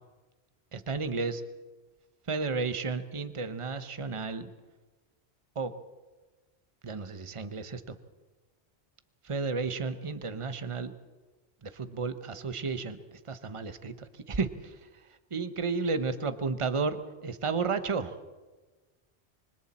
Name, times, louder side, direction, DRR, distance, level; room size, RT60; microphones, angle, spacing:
voice 1, 0.7-1.4 2.3-4.5 5.6-5.7 6.8-8.0 9.2-10.9 11.6-14.8 15.3-18.1, right 4 dB, 30° right, 10 dB, 1.0 m, -32 dB
26.0 x 24.5 x 4.3 m, 1.2 s
omnidirectional pair, 1.1 m